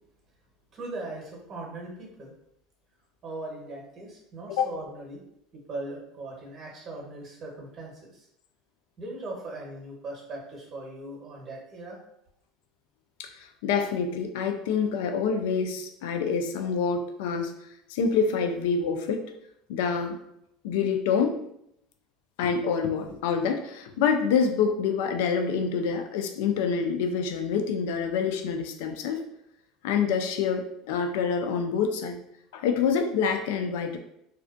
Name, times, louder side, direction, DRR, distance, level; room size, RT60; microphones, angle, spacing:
voice 1, 0.7-2.3 3.2-5.2 5.7-8.3 9.0-12.0, right 2 dB, 40° right, -2 dB, 1.0 m, -39 dB
voice 2, 13.2-17.5 17.9-19.2 19.7-20.2 20.6-21.4 22.4-29.2 29.8-32.2 32.5-34.0, left 6 dB, 75° left, 5 dB, 0.3 m, -26 dB
2.4 x 2.2 x 2.4 m, 0.76 s
supercardioid pair, 95°, 0 cm